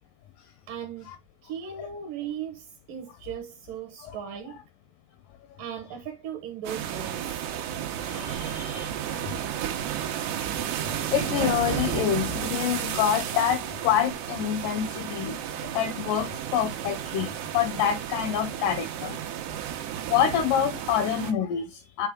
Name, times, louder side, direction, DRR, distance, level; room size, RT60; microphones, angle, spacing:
voice 1, 0.7-1.1 1.4-4.6 5.6-7.2, right 8 dB, 70° right, 2.4 m, -37 dB
sound 1, 6.7-21.3, right 10 dB, 85° right, 3.1 m, -32 dB
voice 2, 8.0-9.4 10.9-17.3 17.5-19.2 20.1-22.1, left 9 dB, 85° left, 1.9 m, -27 dB
8.6 x 3.5 x 3.6 m
omnidirectional pair, 4.6 m